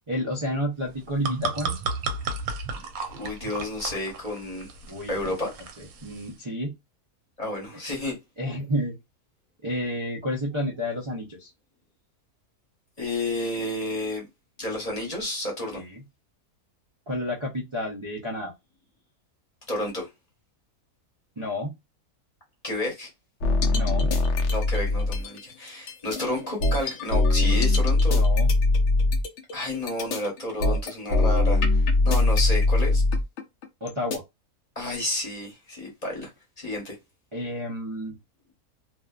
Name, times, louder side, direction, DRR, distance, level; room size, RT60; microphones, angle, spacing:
voice 1, 0.1-1.8 4.9-5.3 5.8-6.7 8.4-9.0 9.6-11.5 15.7-16.0 17.1-18.5 21.4-21.7 23.7-24.1 28.1-28.5 33.8-34.2 37.3-38.2, left 1 dB, 45° right, 0.3 m, -30 dB
sound 1, 0.9-6.3, right 4 dB, 75° right, 1.0 m, -34 dB
voice 2, 3.1-4.7 5.1-5.5 7.4-8.2 13.0-14.3 14.6-15.8 19.7-20.1 22.6-23.1 24.5-28.2 29.5-33.0 34.8-36.3 36.6-37.0, left 1 dB, 30° left, 0.9 m, -31 dB
sound 2, 23.4-25.4 25.9-34.2, left 2 dB, 65° left, 0.7 m, -22 dB
2.5 x 2.4 x 2.3 m
omnidirectional pair, 1.6 m